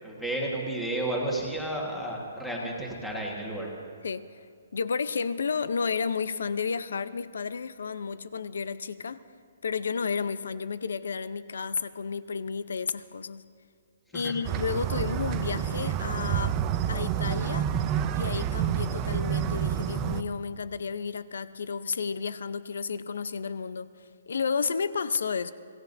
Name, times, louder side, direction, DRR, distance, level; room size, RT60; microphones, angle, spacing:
voice 1, 0.0-3.7 14.1-14.4, right 1 dB, ahead, -3 dB, 1.5 m, -32 dB
voice 2, 4.0-4.5 4.7-9.2 9.6-13.4 14.1-16.5 16.9-17.7 18.1-25.5, left 5 dB, 65° left, 14 dB, 0.7 m, -32 dB
sound 1, 14.4-20.2, right 9 dB, 15° right, 0.4 m, -28 dB
26.0 x 17.0 x 2.7 m, 2.3 s
hypercardioid pair, 180°, 0 cm